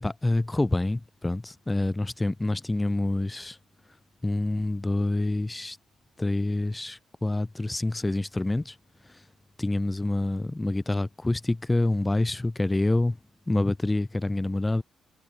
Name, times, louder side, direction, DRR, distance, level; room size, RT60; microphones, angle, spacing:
voice 1, 0.0-3.6 4.2-5.8 6.2-8.8 9.0-9.2 9.6-13.2 13.5-14.8, left 2 dB, 15° left, 0.4 m, -27 dB
cardioid pair, 90°, 0 cm